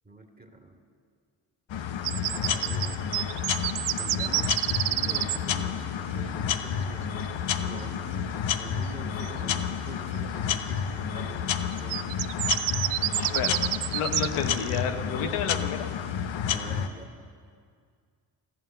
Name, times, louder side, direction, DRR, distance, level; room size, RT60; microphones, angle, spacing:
voice 1, 0.0-0.8 2.2-3.0 4.0-12.2 13.3-13.7 16.4-17.1, right 2 dB, 15° right, 2 dB, 2.4 m, -45 dB
sound 1, 1.7-16.9, left 8 dB, 65° left, 1.0 m, -30 dB
sound 2, 2.0-5.4 9.2-9.3 11.7-14.8, right 15 dB, 75° right, 0.6 m, -29 dB
voice 2, 13.2-13.5 13.9-15.9, left 7 dB, 85° left, 6 dB, 1.0 m, -30 dB
14.5 x 11.5 x 7.7 m, 2.1 s
supercardioid pair, 50°, 50 cm